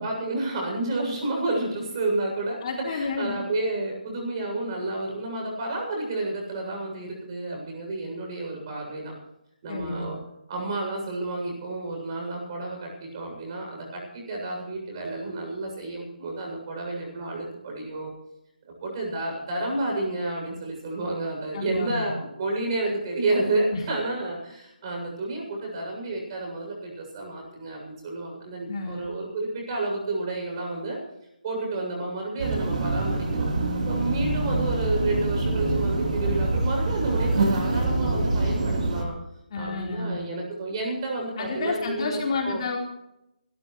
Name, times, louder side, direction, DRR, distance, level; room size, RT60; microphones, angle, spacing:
voice 1, 0.0-2.6 2.9-9.1 9.6-10.2 10.5-18.1 18.7-31.0 31.4-33.5 33.8-39.2 39.5-42.2 42.4-42.6, right 2 dB, 30° right, 0 dB, 7.5 m, -30 dB
voice 2, 2.6-3.4 9.7-10.1 21.5-22.1 23.7-23.8 28.7-29.1 39.5-40.2 41.4-42.8, left 4 dB, 40° left, -1 dB, 4.1 m, -30 dB
sound 1, 32.4-39.0, right 2 dB, 50° right, 3.8 m, -25 dB
25.5 x 13.5 x 3.2 m, 0.84 s
hypercardioid pair, 165°, 5 cm